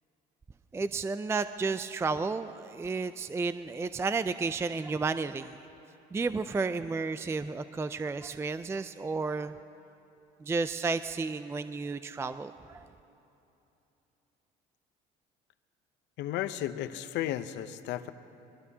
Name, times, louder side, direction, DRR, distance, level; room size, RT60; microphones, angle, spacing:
voice 1, 0.7-5.6 6.1-9.5 10.4-12.9, right 4 dB, 15° right, 12 dB, 0.4 m, -32 dB
voice 2, 16.2-18.1, left 12 dB, 70° left, 12 dB, 0.7 m, -34 dB
23.0 x 22.0 x 2.8 m, 2.9 s
supercardioid pair, 85°, 19 cm